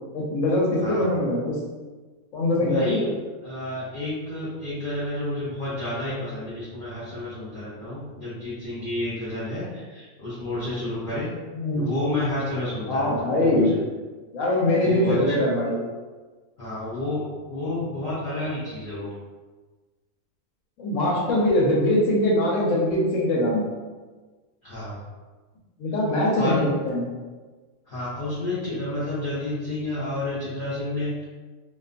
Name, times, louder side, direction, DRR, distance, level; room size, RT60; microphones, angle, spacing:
voice 1, 0.1-1.5 2.3-3.0 11.5-11.9 12.9-13.7 14.3-15.8 20.8-23.7 25.8-27.1, left 1 dB, 70° left, -4 dB, 1.1 m, -22 dB
voice 2, 2.6-3.2 3.4-11.3 11.7-13.8 14.8-15.3 16.6-19.1 24.6-25.0 26.3-26.6 27.9-31.2, left 1 dB, 50° left, -10 dB, 0.7 m, -30 dB
2.5 x 2.4 x 2.4 m, 1.3 s
omnidirectional pair, 1.4 m